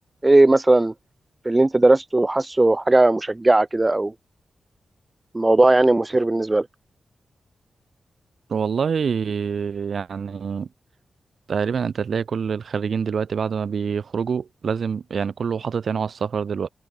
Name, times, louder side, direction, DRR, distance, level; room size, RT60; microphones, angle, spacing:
voice 1, 0.2-0.9 1.5-4.1 5.3-6.7, right 2 dB, 15° right, 0.4 m, -17 dB
voice 2, 8.5-10.7 11.5-16.7, right 6 dB, 60° right, 3.1 m, -26 dB
wide cardioid pair, 150°, 0 cm